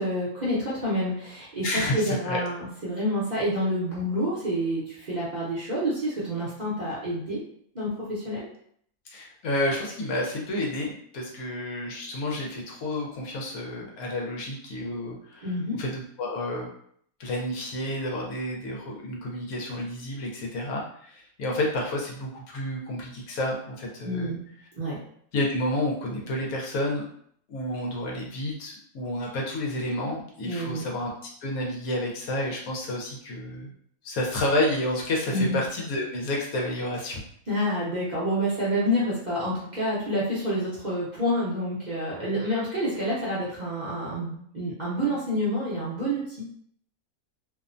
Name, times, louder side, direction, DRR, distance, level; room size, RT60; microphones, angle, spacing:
voice 1, 0.0-7.4 7.7-8.4 15.4-15.8 24.0-24.4 24.8-25.0 30.4-30.8 35.3-35.6 37.5-46.6, equal, 45° right, -9 dB, 0.6 m, -28 dB
voice 2, 1.6-2.4 9.1-15.5 15.8-16.7 17.2-24.3 25.3-27.0 27.5-31.1 31.4-33.7 34.0-37.2, left 1 dB, 75° left, -1 dB, 1.1 m, -30 dB
2.7 x 2.1 x 2.5 m, 0.65 s
omnidirectional pair, 1.5 m